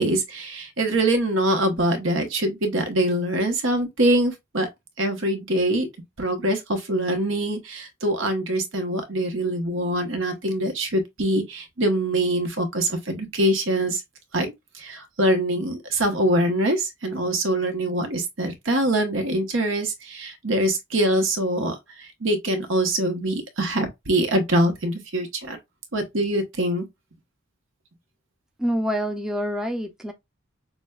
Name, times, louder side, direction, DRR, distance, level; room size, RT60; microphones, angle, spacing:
voice 1, 0.0-4.7 5.0-5.9 6.2-14.0 14.3-25.6 25.9-26.9, right 1 dB, 75° right, 1.1 m, -24 dB
voice 2, 28.6-30.1, equal, 5° right, 0.4 m, -26 dB
6.0 x 2.2 x 2.3 m
head